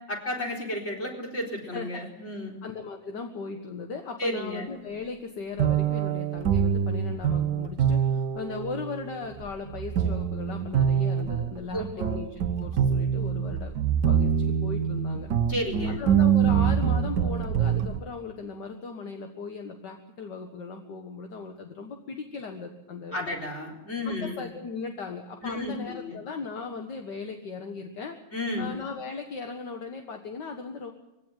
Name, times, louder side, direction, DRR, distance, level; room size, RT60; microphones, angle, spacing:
voice 1, 0.1-2.6 4.2-4.7 11.7-12.2 15.5-16.0 23.1-24.4 25.4-26.2 28.3-28.7, left 1 dB, 35° left, 0 dB, 4.6 m, -32 dB
voice 2, 2.3-11.9 12.1-13.7 14.1-15.3 15.8-23.3 24.1-28.2 28.6-30.9, left 4 dB, 60° left, 4 dB, 2.1 m, -37 dB
sound 1, 5.6-18.0, right 8 dB, 60° right, 1.5 m, -25 dB
22.5 x 16.5 x 9.2 m, 0.97 s
omnidirectional pair, 2.1 m